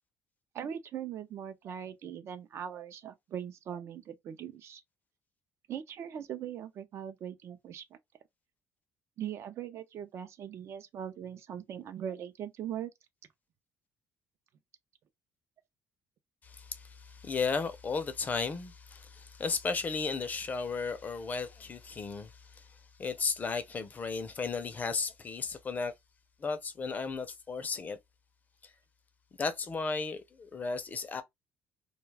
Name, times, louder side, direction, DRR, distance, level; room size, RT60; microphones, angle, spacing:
voice 1, 0.5-4.8 5.7-7.8 9.2-12.9, right 9 dB, 55° right, 0.5 m, -40 dB
voice 2, 16.4-25.9 26.4-28.0 28.6-28.7 29.4-31.2, left 4 dB, 30° left, 0.5 m, -35 dB
2.3 x 2.3 x 3.2 m
cardioid pair, 115°, 5 cm